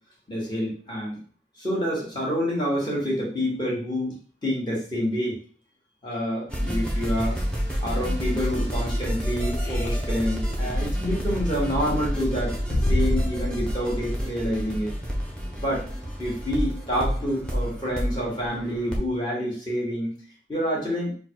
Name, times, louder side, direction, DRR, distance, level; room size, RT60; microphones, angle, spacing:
voice 1, 0.3-1.2 1.6-4.1 4.4-5.4 6.0-7.4 7.8-12.6 12.9-14.9 15.6-15.9 16.2-20.2 20.5-21.1, equal, 25° left, -4 dB, 1.5 m, -28 dB
sound 1, 6.5-19.0, equal, 5° left, 0.9 m, -29 dB
sound 2, 9.6-10.0 10.3-10.4 10.7-14.0, left 1 dB, 65° left, 0.6 m, -29 dB
3.7 x 2.3 x 4.5 m, 0.43 s
head